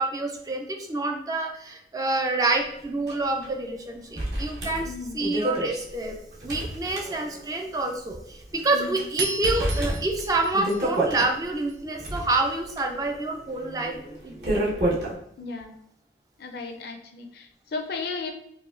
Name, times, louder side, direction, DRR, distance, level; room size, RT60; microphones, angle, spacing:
voice 1, 0.0-4.9 5.1-6.2 6.4-14.0 14.2-14.7, right 2 dB, 20° right, 3 dB, 0.3 m, -27 dB
sound 1, 3.1-3.2 3.4-3.5 4.2-7.6 7.9-8.0 8.6-9.0 9.4-11.3 11.8-15.1, right 1 dB, 60° right, 1.0 m, -29 dB
voice 2, 4.8-5.3 8.7-9.1 15.4-15.8 16.4-18.3, left 4 dB, 60° left, 4 dB, 0.4 m, -35 dB
sound 2, 9.2-11.7, right 4 dB, 80° right, 0.5 m, -35 dB
4.8 x 2.2 x 2.5 m, 0.75 s
head